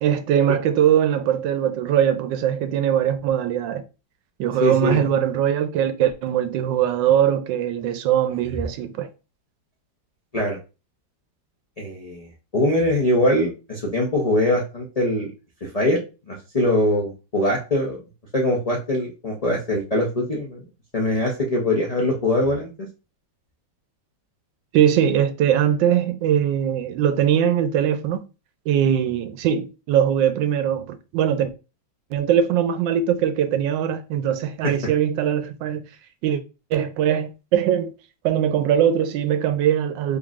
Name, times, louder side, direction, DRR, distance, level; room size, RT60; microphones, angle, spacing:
voice 1, 0.0-3.8 4.4-9.1 24.7-28.2 28.7-31.5 32.1-35.8 36.2-36.4 36.7-37.9 38.2-40.2, right 9 dB, 85° right, 1.3 m, -21 dB
voice 2, 4.6-5.1 10.3-10.6 11.8-12.3 12.5-15.3 15.6-16.0 16.3-18.0 18.3-20.6 20.9-22.7, left 1 dB, 90° left, 0.3 m, -22 dB
3.8 x 3.1 x 2.4 m
omnidirectional pair, 1.9 m